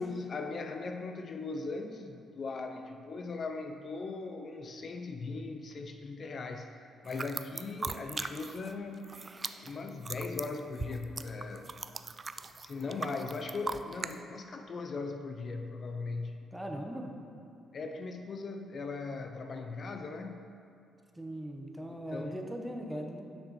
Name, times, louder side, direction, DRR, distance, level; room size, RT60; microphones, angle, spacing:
voice 1, 0.0-9.2 9.6-11.7 12.6-16.4 17.7-20.4 21.9-22.4, left 3 dB, 45° left, 5 dB, 0.5 m, -39 dB
sound 1, 7.1-8.7 9.0-14.1, right 4 dB, 35° right, 0.3 m, -39 dB
voice 2, 16.5-17.1 21.2-23.3, right 1 dB, 10° right, 2 dB, 0.8 m, -39 dB
7.2 x 6.4 x 4.2 m, 2.6 s
cardioid pair, 90°, 0 cm